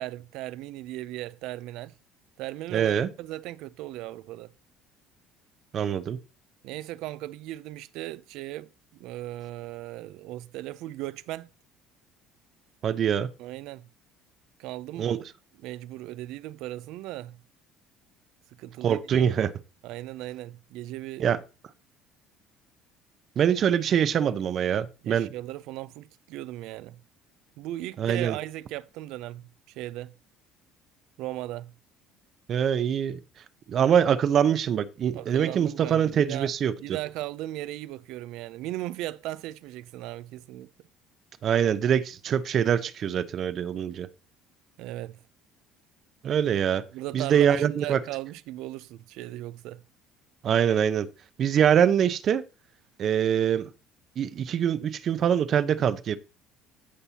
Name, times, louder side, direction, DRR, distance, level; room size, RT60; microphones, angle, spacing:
voice 1, 0.0-1.9 2.4-4.5 6.6-8.7 9.0-11.5 13.4-13.9 14.6-15.1 15.6-17.4 18.6-19.3 19.8-21.3 25.0-27.0 27.6-30.1 31.2-31.7 35.1-36.5 36.8-40.7 44.8-45.2 46.9-49.8, right 15 dB, 75° right, 0.5 m, -37 dB
voice 2, 2.7-3.1 5.7-6.2 12.8-13.3 15.0-15.2 18.8-19.5 21.2-21.4 23.4-25.3 28.0-28.4 32.5-33.2 33.7-36.7 41.4-44.1 46.2-46.8 47.1-48.0 50.4-51.1 51.4-52.4 53.0-53.7 54.2-56.2, right 8 dB, 50° right, 0.8 m, -24 dB
15.0 x 5.5 x 2.9 m
supercardioid pair, 105°, 0 cm